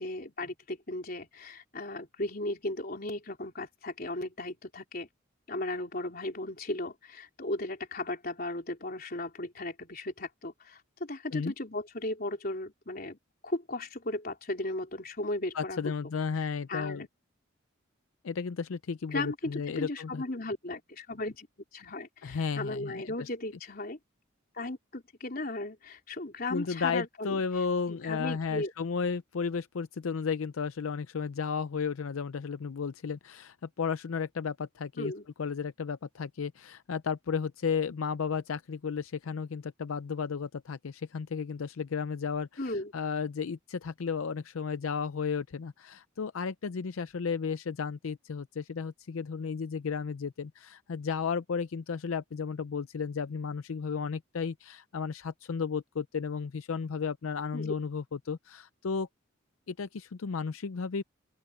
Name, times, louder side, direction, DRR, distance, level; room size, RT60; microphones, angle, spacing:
voice 1, 0.0-5.1 5.5-13.2 13.4-15.9 16.4-16.5 16.7-17.1 19.1-21.5 21.7-24.0 24.5-27.4 27.9-28.7 35.0-35.3 42.6-42.9 57.5-57.7, left 2 dB, 45° left, 3.9 m, -36 dB
voice 2, 15.5-17.1 18.2-20.2 22.2-23.3 26.5-35.1 35.4-59.1 59.7-61.0, left 5 dB, 80° left, 0.5 m, -33 dB
open air
head